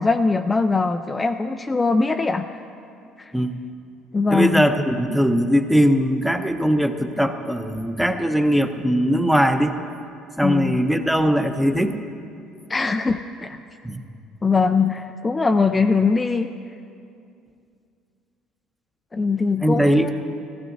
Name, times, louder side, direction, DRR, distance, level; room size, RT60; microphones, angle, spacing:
voice 1, 0.0-2.5 3.2-3.3 4.1-4.7 10.4-10.7 12.7-13.6 14.4-16.5 19.1-20.1, left 4 dB, 25° left, 6 dB, 0.4 m, -21 dB
voice 2, 4.3-9.7 10.4-12.0 13.8-14.0 19.6-20.1, equal, ahead, 6 dB, 0.8 m, -20 dB
15.5 x 14.0 x 2.7 m, 2.5 s
hypercardioid pair, 65°, 0 cm